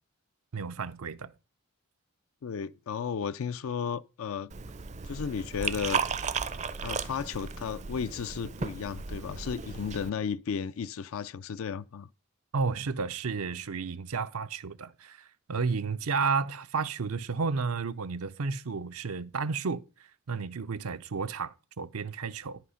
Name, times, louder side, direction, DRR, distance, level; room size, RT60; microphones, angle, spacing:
voice 1, 0.5-1.3 12.5-19.8 20.3-22.6, right 5 dB, 85° right, 0.6 m, -32 dB
voice 2, 2.4-4.5 5.0-6.0 6.8-12.1, left 6 dB, 70° left, 0.4 m, -34 dB
Liquid, 4.5-10.1, right 6 dB, 30° right, 0.5 m, -35 dB
10.5 x 6.0 x 5.6 m
head